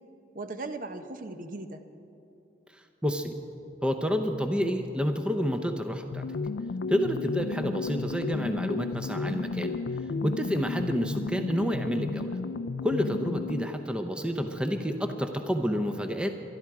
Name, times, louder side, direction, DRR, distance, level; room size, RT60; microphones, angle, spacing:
voice 1, 0.3-1.8 7.5-7.8 13.4-13.6, right 2 dB, 50° right, 8 dB, 0.8 m, -39 dB
voice 2, 3.0-3.3 3.8-6.3 6.9-9.8 10.2-12.4 12.8-16.3, equal, 5° right, 6 dB, 0.7 m, -29 dB
sound 1, 6.1-13.8, left 3 dB, 85° left, 0.4 m, -33 dB
23.5 x 12.0 x 4.8 m, 2.8 s
head